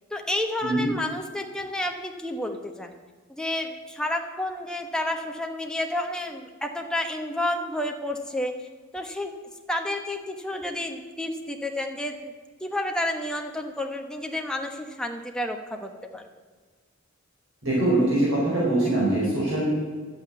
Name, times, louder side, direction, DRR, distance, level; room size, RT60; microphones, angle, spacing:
voice 1, 0.1-2.9 3.3-8.5 8.9-9.3 9.7-12.3 12.6-16.3 19.2-19.4, left 1 dB, 5° left, 3 dB, 1.1 m, -30 dB
voice 2, 17.6-19.7, right 1 dB, 65° right, -6 dB, 5.1 m, -23 dB
11.5 x 8.9 x 9.2 m, 1.5 s
head